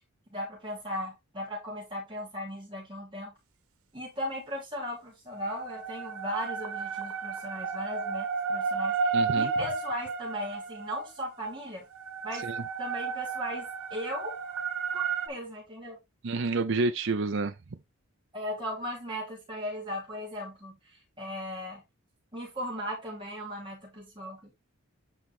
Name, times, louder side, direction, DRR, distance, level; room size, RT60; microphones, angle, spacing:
voice 1, 0.3-3.3 3.9-11.9 12.2-12.5 12.8-14.4 14.9-16.0 18.3-21.8 22.3-24.5, equal, 20° right, 2.9 m, -37 dB
sound 1, 5.4-11.1 12.0-15.3, right 5 dB, 90° right, 1.2 m, -32 dB
voice 2, 9.1-9.5 12.4-12.5 16.2-17.5, right 3 dB, 55° right, 0.6 m, -28 dB
8.7 x 3.9 x 3.7 m
head